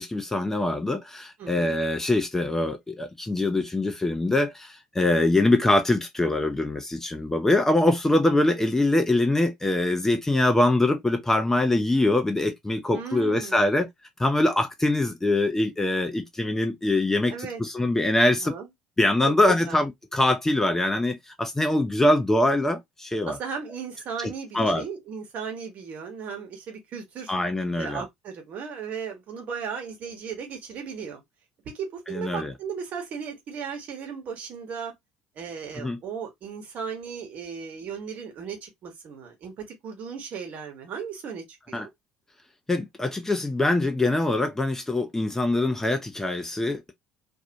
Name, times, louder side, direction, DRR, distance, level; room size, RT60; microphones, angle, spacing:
voice 1, 0.0-13.9 14.2-18.5 19.0-23.4 24.2-24.8 27.3-28.0 32.1-32.5 35.8-36.0 41.7-41.9 42.7-46.9, left 2 dB, 10° left, 0.5 m, -23 dB
voice 2, 1.4-1.8 12.9-13.6 17.3-17.6 18.3-18.7 19.3-19.4 19.7-19.8 23.3-27.3 27.8-31.2 31.6-34.9 35.4-41.9, right 6 dB, 50° right, 1.1 m, -36 dB
2.5 x 2.0 x 2.6 m
figure-of-eight pair, 60°, 4 cm